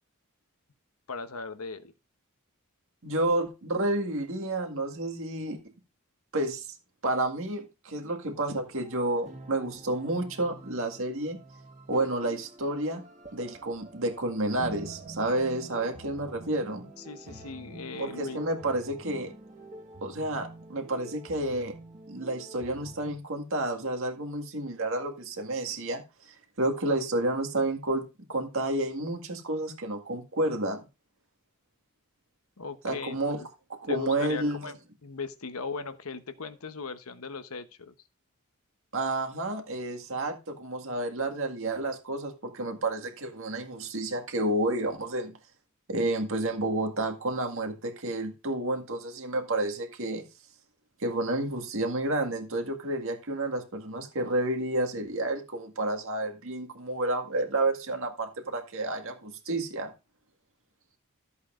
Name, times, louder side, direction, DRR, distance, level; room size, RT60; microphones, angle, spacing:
voice 1, 1.1-1.9 17.0-18.4 32.6-33.5 33.9-37.9, left 4 dB, 70° left, 1.0 m, -38 dB
voice 2, 3.0-5.6 6.3-6.7 7.0-11.4 11.9-13.0 13.3-16.8 18.0-19.3 20.0-21.7 22.1-30.8 32.8-33.4 33.7-34.7 38.9-45.4 45.9-50.3 51.0-59.9, right 2 dB, 65° right, 1.9 m, -30 dB
sound 1, 8.3-23.2, right 2 dB, 30° right, 1.6 m, -47 dB
14.0 x 8.2 x 2.6 m
head